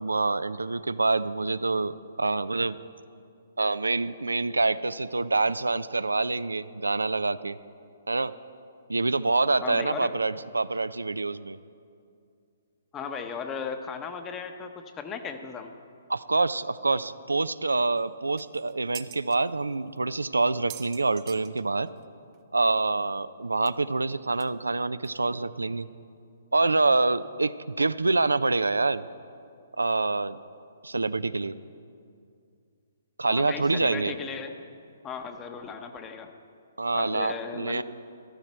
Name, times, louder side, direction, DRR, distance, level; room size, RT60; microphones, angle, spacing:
voice 1, 0.0-2.8 3.6-7.6 8.1-8.3 8.9-11.6 16.1-21.9 22.5-25.9 26.5-29.1 29.8-30.4 30.8-31.5 33.2-34.1 36.8-37.8, right 3 dB, 90° right, 15 dB, 0.4 m, -26 dB
voice 2, 9.6-10.1 12.9-15.7 33.3-34.5 35.0-36.3 36.9-37.8, left 6 dB, 20° left, 7 dB, 0.9 m, -36 dB
sound 1, 18.0-18.1 18.4-19.4 20.0-20.1 20.4-22.0 22.3-22.4 22.7-22.8 23.7-23.8 24.4-24.5 25.0-25.1, right 15 dB, 30° right, 0.6 m, -45 dB
14.0 x 13.0 x 4.4 m, 2.4 s
figure-of-eight pair, 130°, 0 cm